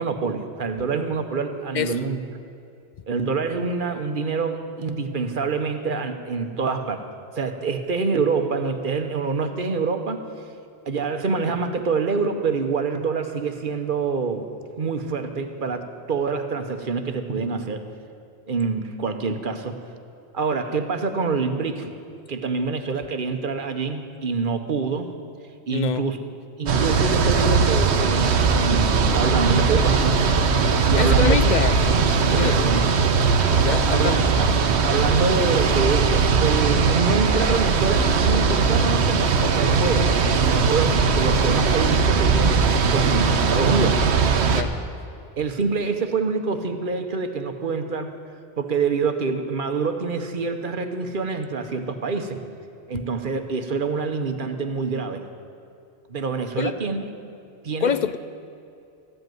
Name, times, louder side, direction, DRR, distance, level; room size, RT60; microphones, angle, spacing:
voice 1, 0.0-2.2 3.1-7.0 7.3-10.2 10.9-14.5 14.8-17.8 18.5-19.8 20.3-21.9 22.3-25.1 25.7-26.2 26.6-30.3 30.9-31.4 32.3-32.8 33.9-34.5 34.8-44.0 45.4-48.2 48.6-52.4 52.9-55.3 56.1-57.1 57.6-57.9, right 4 dB, 50° right, 7 dB, 1.1 m, -26 dB
voice 2, 25.7-26.1 31.0-31.8 32.3-32.8 33.6-34.3 44.5-44.7 56.6-56.7 57.8-58.2, left 7 dB, 55° left, 13 dB, 0.5 m, -25 dB
sound 1, 26.7-44.6, right 5 dB, 75° right, 1.1 m, -19 dB
14.5 x 8.0 x 9.2 m, 2.6 s
omnidirectional pair, 1.1 m